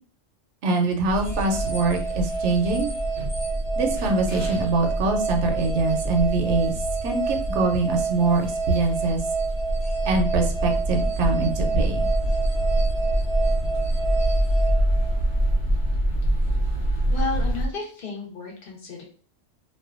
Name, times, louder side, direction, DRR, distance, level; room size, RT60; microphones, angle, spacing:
voice 1, 0.6-2.9 3.8-6.7 7.0-9.2 10.1-12.1, right 3 dB, 80° right, 3 dB, 0.9 m, -24 dB
sound 1, 1.0-17.7, right 1 dB, 85° left, 1.2 m, -26 dB
sound 2, 1.1-15.5, right 4 dB, 10° right, 0.4 m, -29 dB
voice 2, 17.1-19.0, left 3 dB, 55° left, -1 dB, 1.0 m, -32 dB
2.6 x 2.2 x 2.4 m, 0.42 s
omnidirectional pair, 1.2 m